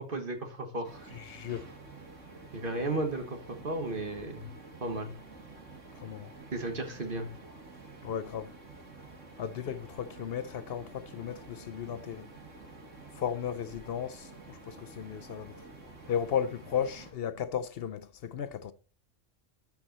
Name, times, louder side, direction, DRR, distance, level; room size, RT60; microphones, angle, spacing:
voice 1, 0.0-1.1 2.5-4.5 4.8-5.1 6.5-7.3, right 2 dB, 45° right, 1.5 m, -34 dB
sound 1, 0.8-17.1, right 3 dB, 85° right, 2.3 m, -50 dB
voice 2, 1.1-1.7 6.0-6.3 8.0-8.5 9.4-12.3 13.2-15.5 16.1-18.7, left 8 dB, 65° left, 0.7 m, -35 dB
12.5 x 4.8 x 4.0 m
omnidirectional pair, 1.3 m